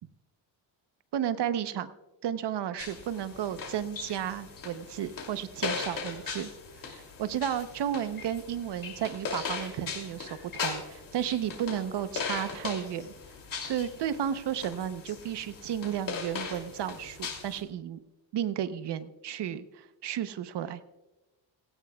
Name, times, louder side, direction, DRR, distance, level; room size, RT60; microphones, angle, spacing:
voice 1, 1.1-1.9 2.2-6.5 6.8-13.1 13.7-18.0 18.3-20.8, right 9 dB, 65° right, 12 dB, 0.9 m, -33 dB
sound 1, 2.8-17.6, left 5 dB, 45° left, 2.8 m, -39 dB
17.0 x 16.5 x 2.3 m, 1.0 s
cardioid pair, 135°, 45 cm